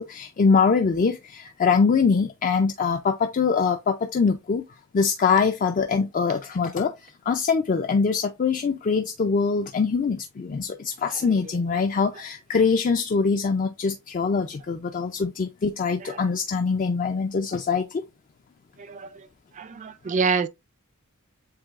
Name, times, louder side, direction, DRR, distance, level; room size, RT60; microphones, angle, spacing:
voice 1, 0.0-4.6 4.9-18.0, left 5 dB, 40° left, 0.4 m, -23 dB
voice 2, 18.8-19.3 19.5-20.5, right 5 dB, 35° right, 0.4 m, -27 dB
7.5 x 2.7 x 2.4 m
head